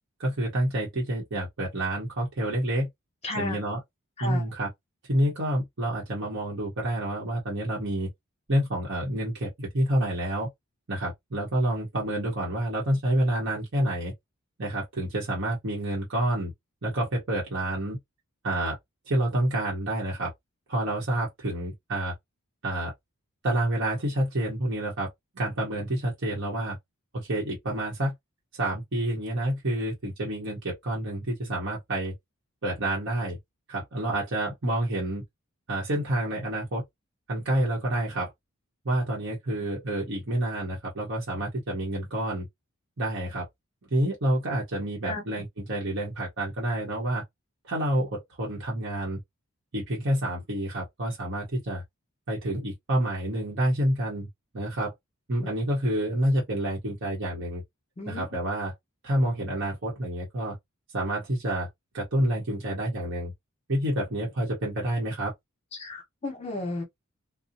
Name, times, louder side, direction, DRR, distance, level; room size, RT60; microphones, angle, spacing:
voice 1, 0.2-2.9 3.3-3.8 4.2-4.7 5.1-8.1 8.5-10.5 10.9-14.1 14.6-16.5 16.8-18.0 18.4-18.8 19.1-20.3 20.7-22.1 22.6-22.9 23.4-25.1 25.3-26.8 27.1-28.1 28.6-32.1 32.6-33.4 33.7-35.2 35.7-36.8 37.3-38.3 38.8-42.5 43.0-43.5 43.9-47.2 47.7-49.2 49.7-51.8 52.3-54.3 54.5-54.9 55.3-57.6 58.0-58.7 59.0-60.5 60.9-61.7 61.9-63.3 63.7-65.3, right 1 dB, 55° right, 0.9 m, -28 dB
voice 2, 3.2-3.6 4.2-4.4 45.0-45.2 58.0-58.2 65.8-66.8, left 2 dB, 30° left, 1.1 m, -33 dB
2.6 x 2.0 x 2.6 m
head